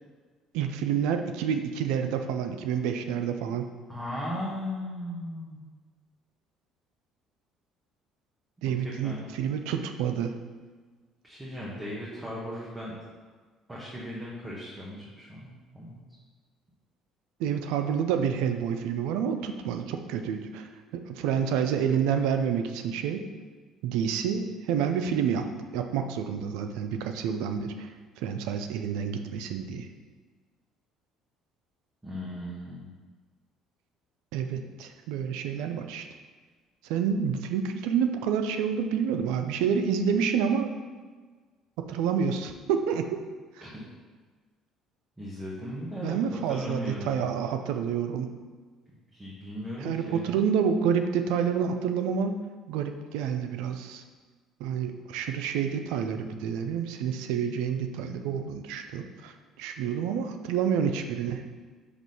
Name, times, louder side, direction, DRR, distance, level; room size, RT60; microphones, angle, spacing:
voice 1, 0.5-3.7 8.6-10.3 17.4-23.2 23.8-25.5 25.7-27.9 28.2-29.9 34.3-36.1 36.8-40.7 41.9-43.1 43.6-43.7 46.0-48.3 49.8-52.3 52.7-54.0 54.6-61.4, right 7 dB, 85° right, 7 dB, 0.5 m, -28 dB
voice 2, 3.9-5.6 8.8-9.3 11.2-13.1 13.7-16.0 32.0-32.9 43.6-43.8 45.2-46.2 46.5-47.1 49.1-50.2, equal, 15° right, -6 dB, 1.3 m, -37 dB
6.0 x 3.0 x 5.4 m, 1.4 s
supercardioid pair, 95°, 0 cm